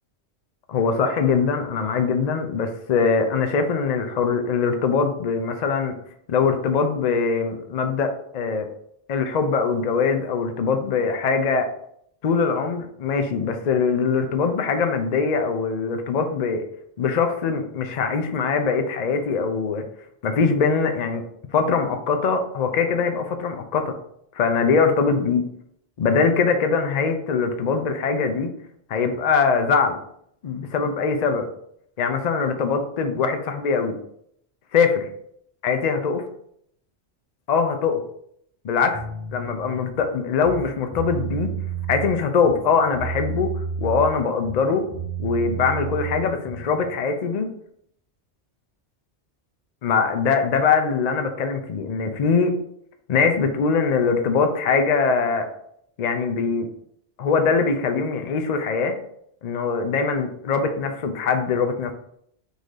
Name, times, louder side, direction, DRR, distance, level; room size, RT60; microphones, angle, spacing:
voice 1, 0.7-5.9 6.3-8.7 9.1-11.7 12.2-16.6 17.0-19.8 20.2-21.2 21.5-24.0 24.3-25.4 26.0-28.5 28.9-30.0 30.4-31.5 32.0-34.0 34.7-35.1 35.6-36.2 37.5-38.0 38.6-39.0 39.3-41.5 41.9-43.5 43.8-44.8 45.2-47.5 49.8-52.5 53.1-55.5 56.0-56.7 57.2-59.0 59.4-61.9, left 5 dB, 50° left, 6 dB, 0.5 m, -22 dB
sound 1, 38.9-40.0 40.3-42.1 42.4-44.2 44.4-46.8, right 6 dB, 25° right, 1.1 m, -31 dB
3.9 x 2.6 x 4.8 m, 0.70 s
omnidirectional pair, 1.2 m